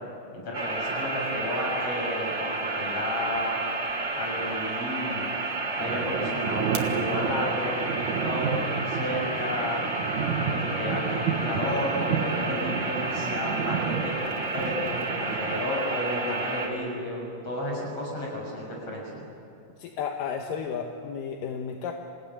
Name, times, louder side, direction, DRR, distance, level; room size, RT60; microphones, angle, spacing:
voice 1, 0.3-3.6 4.2-5.3 5.8-9.8 10.5-19.2, left 1 dB, 45° left, -1 dB, 7.5 m, -32 dB
sound 1, 0.5-16.7, right 2 dB, 35° right, 3.5 m, -31 dB
sound 2, 5.8-15.6, right 7 dB, 65° right, 2.7 m, -32 dB
voice 2, 19.8-21.9, left 7 dB, 80° left, 3 dB, 2.8 m, -33 dB
27.0 x 17.5 x 9.8 m, 2.5 s
omnidirectional pair, 3.8 m